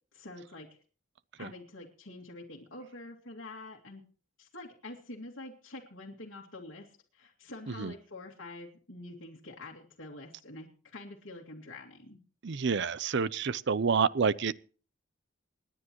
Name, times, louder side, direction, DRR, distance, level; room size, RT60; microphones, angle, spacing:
voice 1, 0.1-0.8 1.4-4.0 4.4-12.2, left 2 dB, 80° left, 2.2 m, -46 dB
voice 2, 12.4-14.5, right 5 dB, 60° right, 0.6 m, -28 dB
27.0 x 10.0 x 3.0 m
head